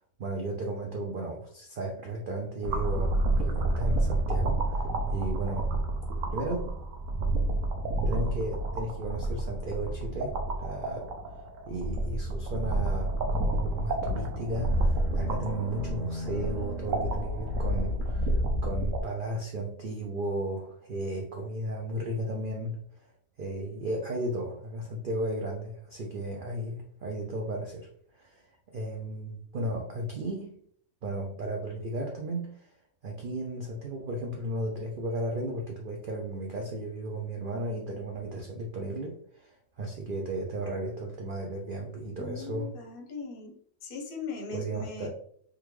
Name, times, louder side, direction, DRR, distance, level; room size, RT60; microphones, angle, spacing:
voice 1, 0.2-5.7 6.3-6.8 8.1-11.1 11.7-22.8 23.4-27.9 28.1-30.6 31.0-32.7 33.0-42.7 44.5-45.1, right 1 dB, 90° right, 0 dB, 0.4 m, -35 dB
sound 1, 2.6-19.0, right 1 dB, 70° right, 0.9 m, -29 dB
sound 2, 13.5-18.0, left 1 dB, 40° right, 0.6 m, -39 dB
voice 2, 42.2-43.6 43.8-45.1, left 4 dB, 50° left, 1 dB, 0.7 m, -39 dB
3.7 x 2.3 x 3.1 m, 0.63 s
omnidirectional pair, 1.6 m